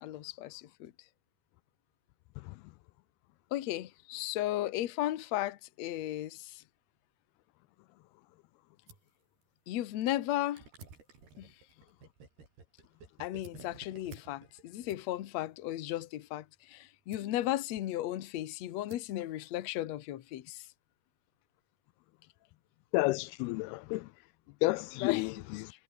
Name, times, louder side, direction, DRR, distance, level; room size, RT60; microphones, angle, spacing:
voice 1, 0.0-0.9 3.5-6.6 9.7-10.6 11.4-11.5 13.2-20.6 25.0-25.3, left 14 dB, 60° left, 1.9 m, -35 dB
sound 1, 8.3-20.4, right 5 dB, 65° right, 7.8 m, -62 dB
Gurgling, 10.6-15.3, right 4 dB, 90° right, 9.0 m, -54 dB
voice 2, 22.9-24.1 24.6-25.7, left 22 dB, 85° left, 2.5 m, -31 dB
omnidirectional pair, 4.5 m